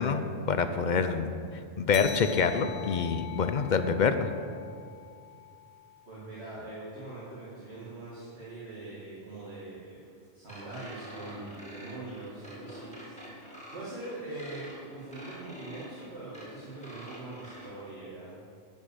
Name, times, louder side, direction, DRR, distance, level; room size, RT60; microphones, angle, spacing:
voice 1, 0.0-1.3 1.8-4.3, left 5 dB, 55° left, 9 dB, 0.6 m, -26 dB
sound 1, 1.9-6.8, left 10 dB, 75° left, 0.9 m, -44 dB
voice 2, 6.1-10.0 10.3-13.3 13.7-18.4, right 2 dB, 70° right, -10 dB, 2.3 m, -42 dB
sound 2, 10.5-17.7, equal, 5° left, 2.0 m, -46 dB
10.5 x 5.4 x 7.7 m, 2.3 s
omnidirectional pair, 1.1 m